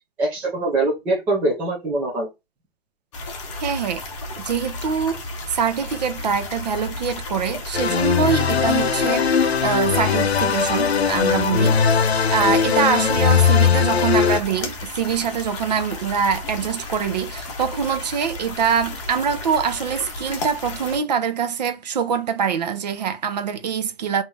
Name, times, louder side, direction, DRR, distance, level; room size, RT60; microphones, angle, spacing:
voice 1, 0.2-2.3, right 2 dB, 5° right, 0.5 m, -23 dB
sound 1, 3.1-21.0, left 2 dB, 30° left, 0.9 m, -33 dB
voice 2, 3.6-4.0 4.4-9.2 9.6-12.0 12.3-24.2, right 7 dB, 40° right, 0.7 m, -24 dB
sound 2, 7.7-14.4, left 7 dB, 80° left, 0.6 m, -19 dB
5.2 x 2.7 x 3.4 m
figure-of-eight pair, 135°, 31 cm